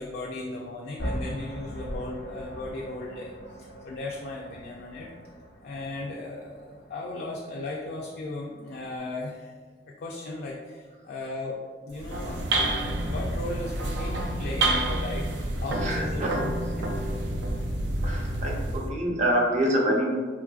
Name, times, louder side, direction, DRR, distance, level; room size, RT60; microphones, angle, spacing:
voice 1, 0.0-5.1 5.6-9.5 10.0-12.4 13.0-17.0, left 2 dB, 60° left, -2 dB, 0.3 m, -36 dB
sound 1, 1.0-9.0, equal, 90° left, 0.8 m, -40 dB
sound 2, 11.9-18.9, right 1 dB, 90° right, 0.4 m, -28 dB
voice 2, 15.8-16.3 18.0-20.2, right 1 dB, 45° right, -1 dB, 0.5 m, -26 dB
3.1 x 2.4 x 2.3 m, 1.5 s
head